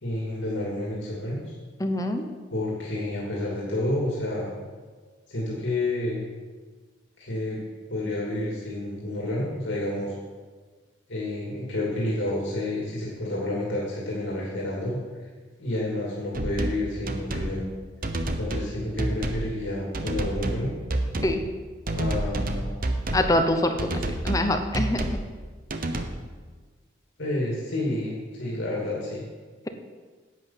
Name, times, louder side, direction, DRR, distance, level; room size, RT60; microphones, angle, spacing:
voice 1, 0.0-1.5 2.5-4.5 5.3-6.3 7.2-7.6 7.9-10.1 11.1-15.2 15.6-17.6 18.4-20.7 21.9-22.7 27.2-29.2, left 1 dB, 65° left, -4 dB, 2.6 m, -29 dB
voice 2, 1.8-2.3 21.2-21.4 23.1-23.9 24.2-25.1, left 1 dB, 15° left, 6 dB, 0.8 m, -24 dB
sound 1, 16.3-16.8 17.1-17.5 18.0-18.7 19.0-19.5 19.9-20.6 20.9-21.4 21.9-23.3 23.8-24.5 24.7-25.2 25.7-26.1, right 1 dB, 45° right, 0.9 m, -28 dB
10.5 x 8.1 x 5.7 m, 1.4 s
head